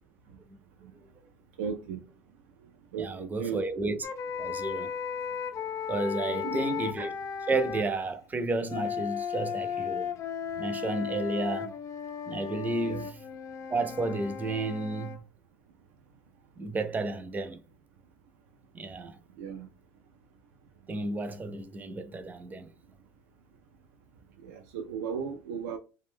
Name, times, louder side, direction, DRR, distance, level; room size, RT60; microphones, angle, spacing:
voice 1, 1.6-2.0 2.9-3.6 6.3-6.7 12.8-13.1 19.4-19.7 24.4-25.8, right 6 dB, 80° right, 0.4 m, -36 dB
voice 2, 3.0-4.0 4.4-4.9 5.9-7.1 7.5-10.1 10.6-11.7 12.3-13.1 13.7-15.2 16.6-17.6 18.7-19.2 20.9-22.7, right 2 dB, 20° right, 0.5 m, -32 dB
sound 1, 4.0-7.9 8.7-15.2, left 7 dB, 40° left, 0.5 m, -35 dB
2.4 x 2.2 x 3.5 m
hypercardioid pair, 85°, 8 cm